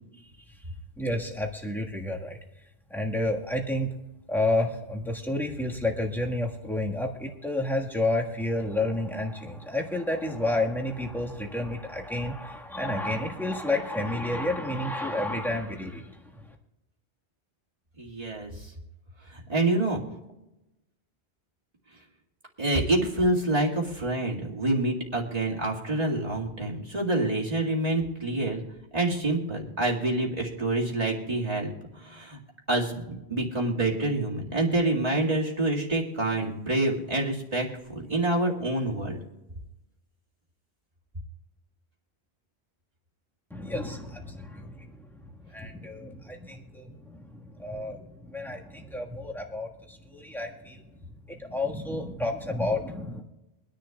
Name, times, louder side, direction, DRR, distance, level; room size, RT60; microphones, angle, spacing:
voice 1, 1.0-2.4 2.9-3.9 4.3-16.5 43.5-50.8 51.3-53.2, left 1 dB, ahead, -1 dB, 1.5 m, -30 dB
voice 2, 18.0-18.7 19.3-20.0 22.6-28.6 28.9-31.7 32.0-32.4 32.7-39.2, right 2 dB, 35° right, -2 dB, 2.1 m, -27 dB
24.5 x 10.5 x 2.3 m, 0.96 s
omnidirectional pair, 1.1 m